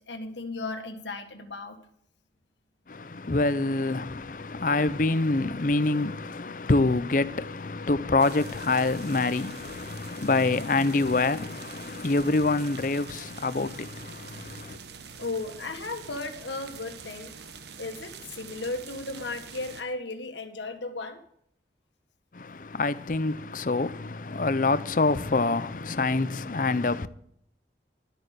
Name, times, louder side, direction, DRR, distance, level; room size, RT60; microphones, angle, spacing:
voice 1, 0.0-1.8 15.2-17.3 17.8-21.2, left 3 dB, 80° left, 1.7 m, -35 dB
voice 2, 2.9-14.8 22.3-27.1, left 3 dB, 45° left, 0.6 m, -26 dB
sound 1, 8.2-19.8, right 6 dB, 70° right, 1.1 m, -45 dB
12.5 x 8.6 x 6.6 m
head